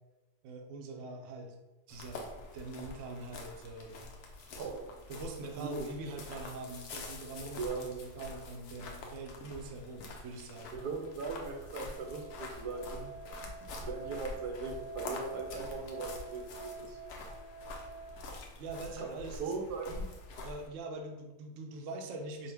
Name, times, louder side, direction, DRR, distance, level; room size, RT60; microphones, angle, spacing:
voice 1, 0.4-1.5 1.9-4.1 4.4-4.6 5.1-10.8 13.3-13.7 18.6-19.5 20.4-22.5, right 2 dB, 65° right, 3 dB, 0.8 m, -43 dB
sound 1, 1.9-20.7, left 3 dB, 75° left, 1.1 m, -46 dB
voice 2, 5.6-5.9 7.6-7.8 10.7-13.1 13.8-17.0 19.0-20.1, right 4 dB, 85° right, 2 dB, 1.2 m, -39 dB
sound 2, 10.6-18.3, right 4 dB, 55° left, 1.0 m, -49 dB
5.2 x 2.1 x 3.3 m, 1.0 s
omnidirectional pair, 1.7 m